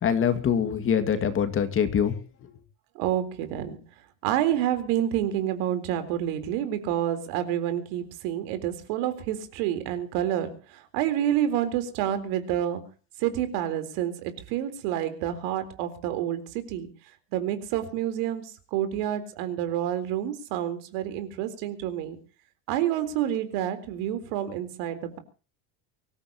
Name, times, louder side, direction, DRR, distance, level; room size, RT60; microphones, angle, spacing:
voice 1, 0.0-2.1, left 8 dB, 30° left, 9 dB, 2.2 m, -24 dB
voice 2, 3.0-3.8 4.2-10.5 10.9-12.8 13.2-16.9 17.3-22.2 22.7-25.2, right 11 dB, 80° right, 9 dB, 3.9 m, -28 dB
24.5 x 15.5 x 3.0 m, 0.35 s
cardioid pair, 155°, 41 cm